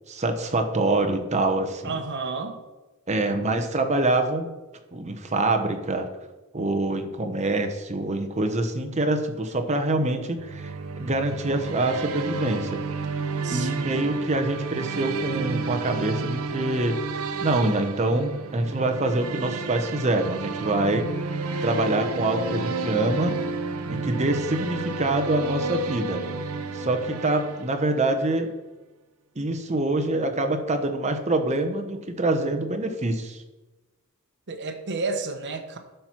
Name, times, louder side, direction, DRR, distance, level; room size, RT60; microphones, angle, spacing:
voice 1, 0.1-1.9 3.1-4.5 4.9-6.1 6.5-12.8 13.5-21.1 21.6-23.4 23.9-26.2 26.7-28.5 29.4-33.4, right 2 dB, 30° right, 6 dB, 0.9 m, -25 dB
voice 2, 1.8-2.6 13.4-14.2 34.5-35.8, right 3 dB, 55° right, 5 dB, 1.1 m, -31 dB
sound 1, 10.4-28.1, right 3 dB, 80° right, 0.7 m, -31 dB
11.5 x 4.6 x 5.8 m, 1.1 s
head